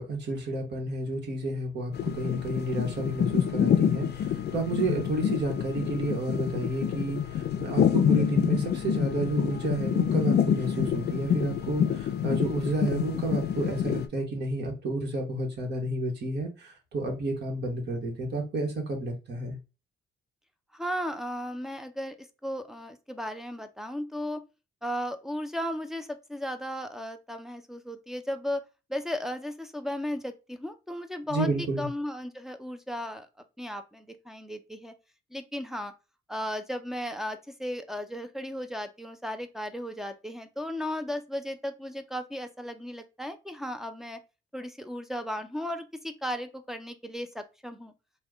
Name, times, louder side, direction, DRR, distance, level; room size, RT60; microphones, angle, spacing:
voice 1, 0.0-19.6 31.3-31.9, right 2 dB, 60° right, 1.4 m, -31 dB
sound 1, 1.9-14.1, left 9 dB, 55° left, 0.5 m, -27 dB
voice 2, 20.7-24.4 24.8-28.6 28.9-33.3 33.6-34.9 35.3-35.9 36.3-44.2 44.5-47.9, equal, ahead, 0.5 m, -35 dB
3.4 x 2.3 x 3.4 m
cardioid pair, 90°, 20 cm